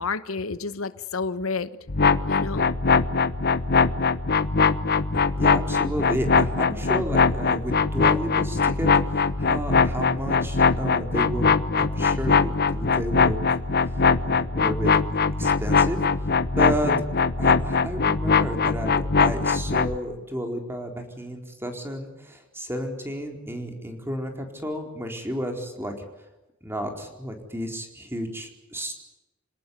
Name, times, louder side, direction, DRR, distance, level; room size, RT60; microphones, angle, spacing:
voice 1, 0.0-1.7 2.3-2.7, left 4 dB, 80° left, 14 dB, 1.1 m, -29 dB
sound 1, 1.9-20.0, left 4 dB, 50° left, 1.0 m, -22 dB
voice 2, 5.4-14.9 15.4-16.3 16.6-16.9 17.4-25.9 26.6-28.9, equal, 10° right, 4 dB, 4.3 m, -32 dB
27.5 x 18.5 x 9.7 m, 0.98 s
head